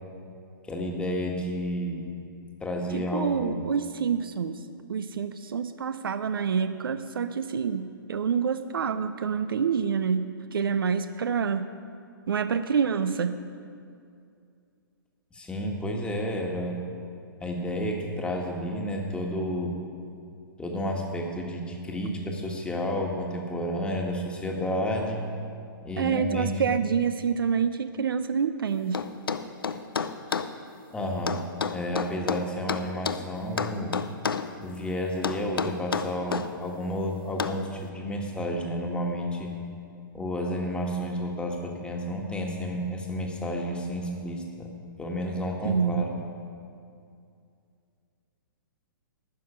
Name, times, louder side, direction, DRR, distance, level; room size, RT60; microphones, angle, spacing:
voice 1, 0.6-2.1 2.6-3.6 15.3-16.8 17.4-19.8 20.6-25.2 25.8-26.8 30.9-31.4 31.7-34.0 34.6-39.5 40.1-44.7 45.0-46.0, equal, 10° left, 1 dB, 1.4 m, -31 dB
voice 2, 2.9-4.6 4.9-11.7 12.3-13.4 26.0-29.1 45.6-46.0, right 6 dB, 80° right, 11 dB, 0.5 m, -27 dB
sound 1, 28.9-30.5 31.3-33.2 33.6-34.5 35.2-36.5 37.4-37.6, left 6 dB, 85° left, 0.6 m, -29 dB
12.0 x 5.9 x 8.6 m, 2.4 s
hypercardioid pair, 125°, 12 cm